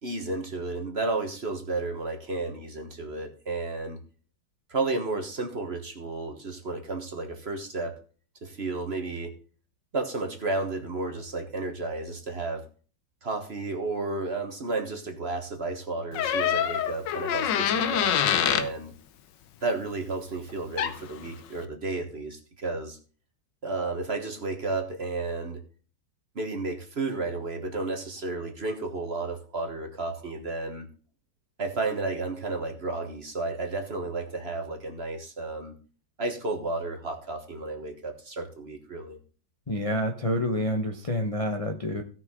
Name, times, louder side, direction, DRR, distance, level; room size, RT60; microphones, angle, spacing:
voice 1, 0.0-4.0 4.7-8.0 8.4-9.3 9.9-12.6 13.2-18.2 18.4-18.9 19.6-23.0 23.6-25.6 26.3-30.9 31.6-35.7 36.2-39.2, right 3 dB, 35° right, 5 dB, 1.4 m, -32 dB
Door, 16.1-18.7 20.5-20.6 20.8-21.2, left 9 dB, 75° left, 1.4 m, -25 dB
voice 2, 39.7-42.0, equal, 25° left, 2 dB, 0.8 m, -28 dB
17.0 x 6.1 x 3.7 m, 0.38 s
omnidirectional pair, 2.0 m